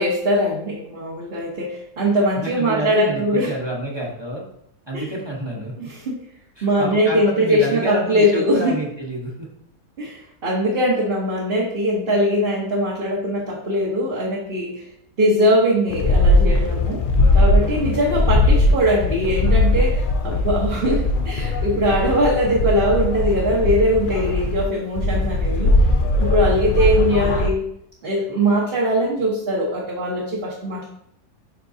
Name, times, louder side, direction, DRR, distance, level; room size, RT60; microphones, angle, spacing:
voice 1, 0.0-3.5 4.9-5.1 5.8-6.2 6.6-8.8 10.0-14.8 15.2-17.0 17.3-25.7 26.2-27.6 28.0-30.9, equal, 40° right, -5 dB, 1.3 m, -21 dB
voice 2, 2.4-4.4 4.9-5.9 6.6-9.5 18.0-18.2 18.4-18.7, right 1 dB, 20° right, -3 dB, 1.0 m, -29 dB
sound 1, 15.9-24.6 24.9-27.5, left 2 dB, 65° left, 0.5 m, -19 dB
10.5 x 3.8 x 2.7 m, 0.76 s
omnidirectional pair, 1.6 m